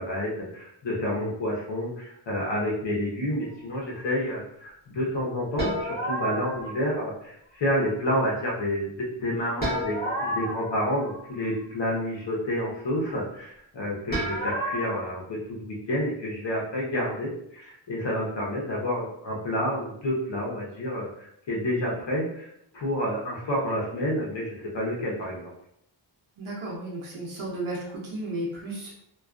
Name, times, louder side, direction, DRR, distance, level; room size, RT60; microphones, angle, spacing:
voice 1, 0.0-22.5 22.7-25.5, equal, 60° left, -4 dB, 0.7 m, -29 dB
sound 1, 5.6-6.9 9.6-11.5 14.1-14.9, right 1 dB, 20° left, 0.9 m, -31 dB
voice 2, 26.4-28.9, right 1 dB, 80° right, -4 dB, 0.8 m, -34 dB
2.3 x 2.2 x 2.3 m, 0.71 s
wide cardioid pair, 150°, 48 cm